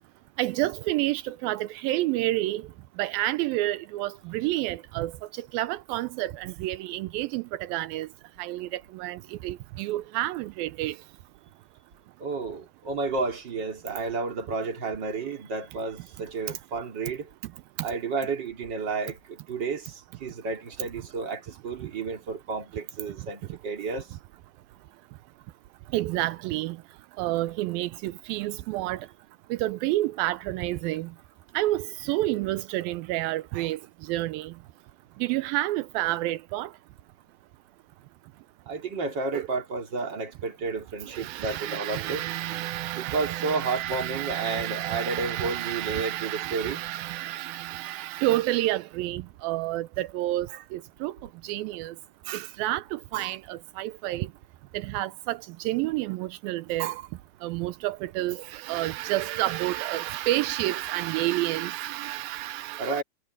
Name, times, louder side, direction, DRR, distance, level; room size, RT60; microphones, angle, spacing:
voice 1, 0.4-2.6 3.0-5.1 5.5-8.1 8.4-11.0 25.9-26.8 27.2-29.0 29.5-31.1 31.5-33.8 34.1-34.5 35.2-36.7 39.3-39.5 41.1-51.1 51.4-51.9 52.3-54.3 54.7-57.0 57.4-63.0, right 16 dB, 90° right, 2.1 m, -29 dB
voice 2, 12.2-17.3 17.8-24.1 38.7-42.2 42.9-46.8 62.8-63.0, right 4 dB, 30° right, 3.0 m, -31 dB
omnidirectional pair, 4.9 m